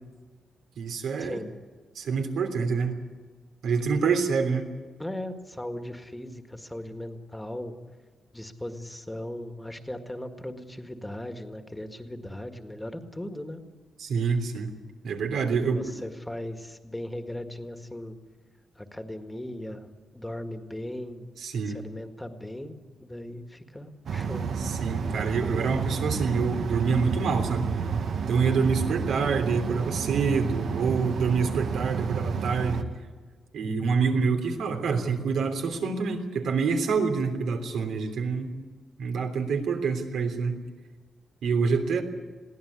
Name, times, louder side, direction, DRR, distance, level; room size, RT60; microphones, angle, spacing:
voice 1, 0.8-1.4 1.9-3.0 3.6-4.7 14.0-14.7 15.0-15.9 21.4-21.8 24.6-27.7 28.3-32.8 33.5-38.6 39.0-40.6 41.4-42.0, right 5 dB, 85° right, 4 dB, 3.3 m, -26 dB
voice 2, 5.0-7.7 8.3-13.6 15.5-18.1 18.8-21.2 21.6-22.7 23.0-24.5, left 1 dB, 5° left, 7 dB, 1.8 m, -38 dB
sound 1, 24.1-32.8, right 6 dB, 65° right, 1.4 m, -30 dB
22.0 x 16.0 x 9.7 m, 1.5 s
cardioid pair, 130°, 0 cm